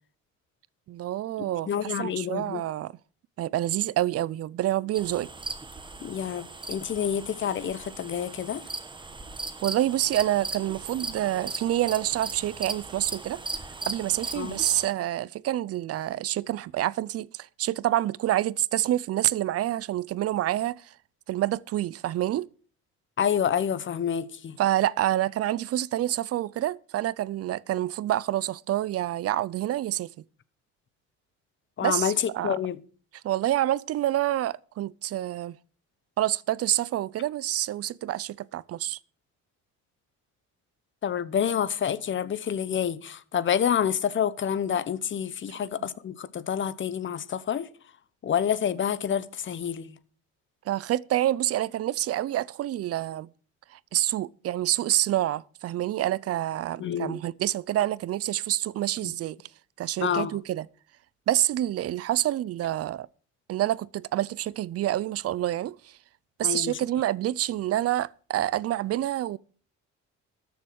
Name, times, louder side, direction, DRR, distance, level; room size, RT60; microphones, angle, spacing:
voice 1, 0.9-3.0 3.4-5.3 9.6-13.4 13.9-20.9 21.3-22.5 24.6-30.1 31.8-32.6 33.2-35.6 36.2-39.0 50.7-53.3 53.7-59.4 59.8-60.7 61.3-63.1 63.5-66.0 66.4-69.4, right 13 dB, 50° right, 0.5 m, -27 dB
voice 2, 1.7-2.6 6.0-8.6 14.4-14.6 23.2-24.6 31.8-32.8 41.0-47.7 48.2-49.9 56.8-57.2 59.0-59.1 60.0-60.3 66.4-66.8, left 8 dB, 40° left, 1.0 m, -28 dB
sound 1, 4.9-14.9, right 3 dB, 15° right, 1.2 m, -38 dB
13.5 x 7.2 x 6.4 m
cardioid pair, 125°, 30 cm